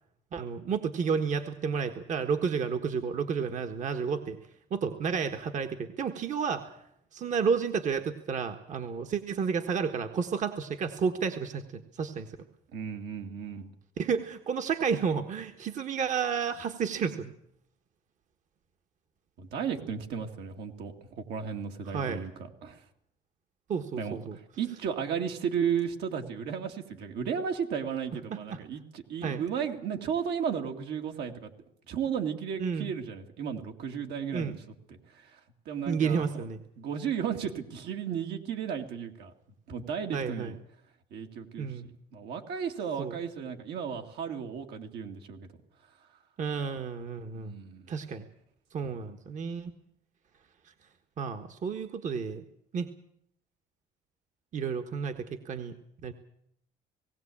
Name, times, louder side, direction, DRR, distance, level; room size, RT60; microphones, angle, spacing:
voice 1, 0.3-4.4 4.7-6.7 7.1-12.3 14.0-17.3 21.9-22.2 23.7-24.4 28.5-28.6 29.2-29.4 32.6-32.9 34.3-34.5 35.9-36.6 40.1-40.5 41.6-41.9 43.0-43.1 46.4-47.5 47.9-48.3 48.7-49.7 51.2-52.4 52.7-52.9 54.5-55.8 56.0-56.1, right 6 dB, 45° right, 6 dB, 1.4 m, -31 dB
voice 2, 12.7-13.7 19.4-22.8 24.0-31.5 31.9-34.6 34.9-35.4 35.7-36.5 36.8-39.3 39.7-40.6 41.1-45.5 47.3-47.9 48.8-48.9, right 7 dB, 75° right, 3 dB, 2.4 m, -34 dB
19.0 x 17.0 x 8.6 m, 0.72 s
cardioid pair, 110°, 17 cm